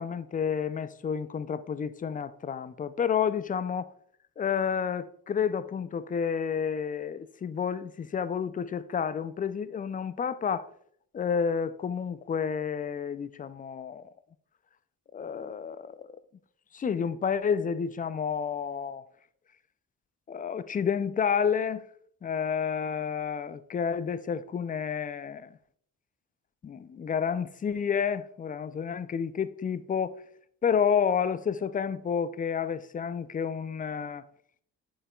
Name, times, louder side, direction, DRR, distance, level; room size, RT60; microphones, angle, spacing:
voice 1, 0.0-3.9 4.4-10.7 11.1-14.1 15.1-16.2 16.7-19.0 20.3-21.8 22.2-25.6 26.6-30.2 30.6-34.2, left 7 dB, 20° left, 0.3 m, -30 dB
8.0 x 6.1 x 2.3 m
hypercardioid pair, 40°, 46 cm